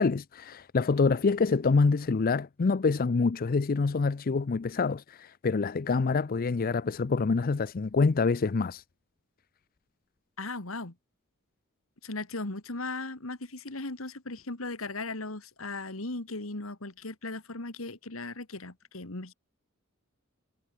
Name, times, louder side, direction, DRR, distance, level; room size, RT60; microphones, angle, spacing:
voice 1, 0.0-8.8, left 4 dB, 45° left, 0.5 m, -26 dB
voice 2, 10.4-10.9 12.0-19.3, left 2 dB, 90° left, 2.5 m, -37 dB
head